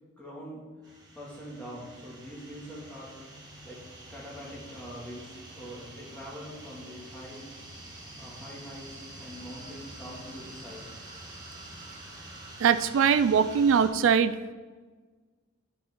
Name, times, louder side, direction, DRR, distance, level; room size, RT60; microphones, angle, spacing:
voice 1, 0.2-3.1 3.6-3.8 4.1-7.4 8.2-10.9, equal, 5° left, -6 dB, 1.9 m, -44 dB
sound 1, 0.8-13.9, right 1 dB, 20° right, 1.6 m, -47 dB
voice 2, 12.6-14.3, right 7 dB, 60° right, 12 dB, 0.3 m, -22 dB
8.8 x 8.3 x 3.6 m, 1.4 s
head